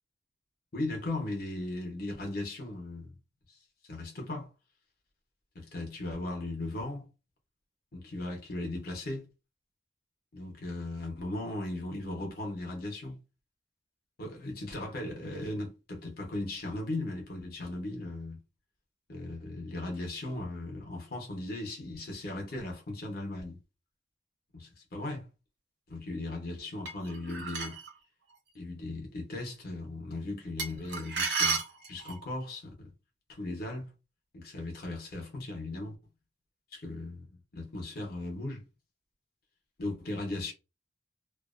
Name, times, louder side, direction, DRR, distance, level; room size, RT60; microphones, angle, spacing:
voice 1, 0.7-3.1 3.5-3.6 3.9-4.5 5.5-7.0 7.9-9.3 10.3-13.2 14.2-18.4 19.1-23.6 24.5-25.2 25.9-27.8 28.5-31.6 31.9-32.9 33.3-33.9 34.3-36.0 36.7-38.6 39.8-40.5, left 2 dB, 60° left, 0.8 m, -37 dB
sound 1, 26.8-27.9 30.6-32.3, right 4 dB, 65° right, 0.6 m, -32 dB
2.5 x 2.1 x 2.4 m
head